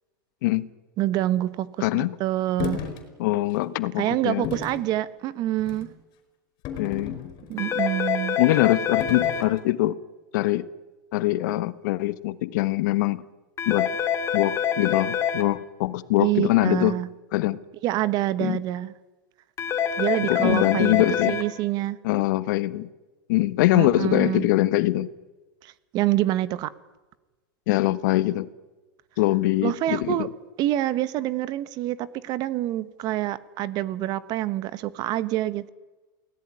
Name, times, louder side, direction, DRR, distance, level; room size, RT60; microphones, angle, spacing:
voice 1, 1.0-2.8 4.0-5.9 7.5-8.4 16.2-17.1 17.8-18.9 20.0-22.0 23.7-24.5 25.6-26.7 29.6-30.3 30.6-35.7, right 14 dB, 40° right, 16 dB, 1.3 m, -26 dB
voice 2, 1.8-2.2 3.2-4.5 6.8-7.3 8.4-10.0 10.3-10.7 11.1-13.2 13.7-13.9 14.3-17.0 17.3-17.6 18.4-18.6 20.3-21.4 22.0-22.9 23.3-25.1 27.7-28.5 29.2-30.3, left 17 dB, 60° left, 15 dB, 1.3 m, -23 dB
sound 1, 2.6-3.0 3.5-3.7 4.4-4.8 5.6-5.9 6.7-7.6 9.0-9.5, left 8 dB, 40° left, 5.1 m, -33 dB
sound 2, 7.6-9.4 13.6-15.4 19.6-21.4, left 8 dB, 25° left, 2.5 m, -26 dB
28.5 x 18.0 x 9.9 m, 1.2 s
supercardioid pair, 150°, 11 cm